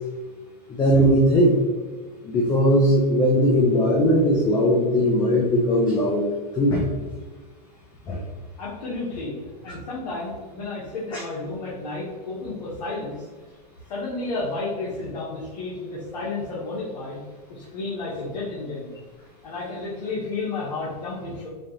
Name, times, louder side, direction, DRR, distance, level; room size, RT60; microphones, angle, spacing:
voice 1, 0.7-1.5 2.3-6.3 6.6-6.8 8.1-8.2 11.1-11.2, equal, 20° left, -2 dB, 0.6 m, -19 dB
voice 2, 8.6-13.3 13.9-17.2 17.5-18.9 19.4-21.5, left 3 dB, 80° left, -7 dB, 1.2 m, -32 dB
4.9 x 2.4 x 2.9 m, 1.4 s
supercardioid pair, 130°, 21 cm